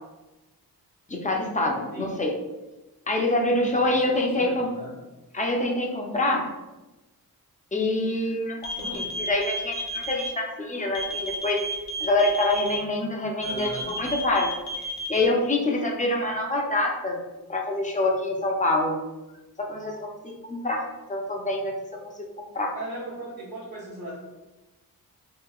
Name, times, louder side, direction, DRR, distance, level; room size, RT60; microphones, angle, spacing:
voice 1, 1.1-2.3 3.1-4.7 5.3-6.4 7.7-11.6 12.0-14.5 15.1-17.2 17.5-19.0 19.6-20.8 21.1-21.8 22.2-22.7, left 2 dB, 20° left, 0 dB, 0.5 m, -26 dB
voice 2, 3.5-4.9 8.8-9.0 13.4-13.9 22.7-24.2, right 1 dB, 70° right, -8 dB, 1.0 m, -38 dB
sound 1, 8.6-10.3 11.0-12.8 13.4-15.2, right 1 dB, 85° left, 0.7 m, -32 dB
3.0 x 2.7 x 2.3 m, 1.1 s
wide cardioid pair, 90°, 37 cm